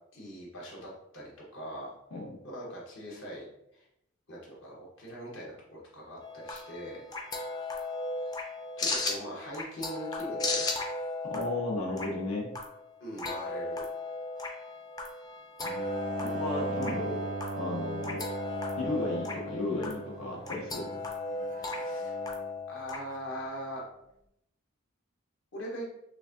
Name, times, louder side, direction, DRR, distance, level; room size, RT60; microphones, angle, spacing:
voice 1, 0.1-1.9 2.4-3.5 3.7-3.8 4.3-7.0 8.2-8.3 8.8-10.6 13.0-13.9 21.6-22.2 22.7-23.8 25.5-25.9, equal, 55° left, -4 dB, 1.0 m, -41 dB
sound 1, 6.2-23.0, left 2 dB, 15° left, 0.4 m, -36 dB
voice 2, 11.3-12.5 16.2-17.2 17.6-18.3 18.8-20.9, left 2 dB, 85° left, -2 dB, 1.3 m, -34 dB
Bowed string instrument, 15.6-22.6, right 2 dB, 40° right, 0.4 m, -38 dB
6.2 x 2.5 x 2.6 m, 0.81 s
head